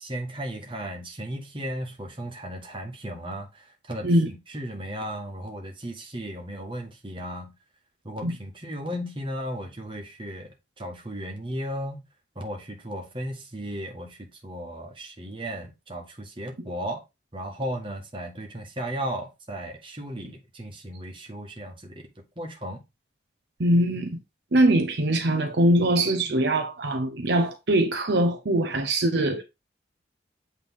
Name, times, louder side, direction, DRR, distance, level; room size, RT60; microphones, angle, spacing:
voice 1, 0.0-7.5 8.0-12.0 12.3-14.2 14.4-17.0 17.3-22.0 22.4-22.8, equal, 25° right, 1.4 m, -35 dB
voice 2, 23.6-24.2 24.5-29.4, right 1 dB, 65° right, 0.8 m, -22 dB
8.2 x 3.5 x 3.6 m
head